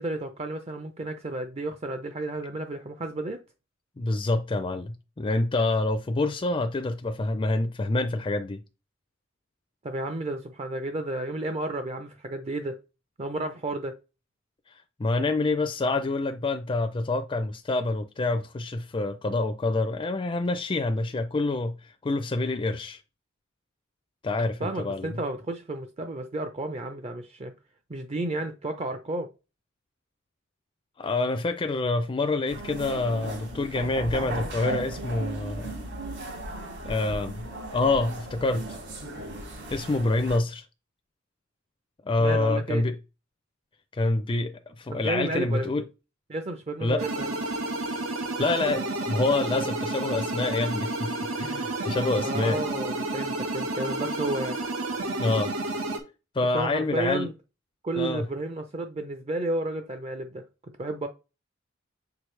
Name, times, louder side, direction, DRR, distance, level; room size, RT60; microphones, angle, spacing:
voice 1, 0.0-3.4 9.8-12.8 13.2-14.0 24.6-27.5 27.9-29.3 42.2-42.8 44.9-45.8 46.3-47.3 52.2-54.6 56.5-57.3 57.8-60.4 60.8-61.1, right 2 dB, 30° right, 0.6 m, -32 dB
voice 2, 4.0-8.6 14.7-14.8 15.0-23.0 24.2-25.1 31.0-35.7 36.8-37.5 37.7-38.8 39.7-40.6 42.0-43.0 43.9-45.8 46.8-47.0 48.4-52.6 55.2-55.5 56.3-57.3 58.0-58.3, left 2 dB, 25° left, 0.4 m, -27 dB
sound 1, 32.5-40.4, right 1 dB, 60° right, 2.5 m, -36 dB
sound 2, 47.0-56.0, right 2 dB, 85° right, 1.3 m, -31 dB
6.6 x 4.7 x 3.2 m
head